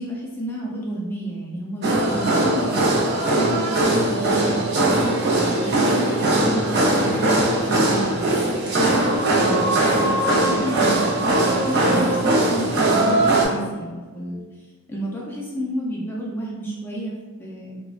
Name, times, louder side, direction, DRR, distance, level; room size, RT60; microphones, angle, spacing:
voice 1, 0.0-2.8 3.3-5.2 5.6-8.3 8.8-9.2 9.5-14.5 14.9-17.8, right 1 dB, 10° left, -4 dB, 0.4 m, -30 dB
sound 1, 1.8-13.5, right 1 dB, 50° right, 0.6 m, -20 dB
3.5 x 2.1 x 2.4 m, 1.3 s
head